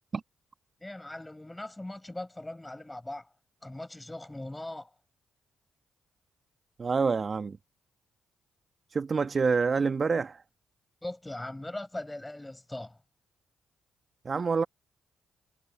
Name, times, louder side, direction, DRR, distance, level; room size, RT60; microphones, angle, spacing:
voice 1, 0.8-3.3 3.6-4.9 11.0-13.0, left 1 dB, 15° left, 6.6 m, -40 dB
voice 2, 6.8-7.6 8.9-10.4 14.2-14.6, right 5 dB, 45° right, 1.3 m, -27 dB
hypercardioid pair, 45°, 0 cm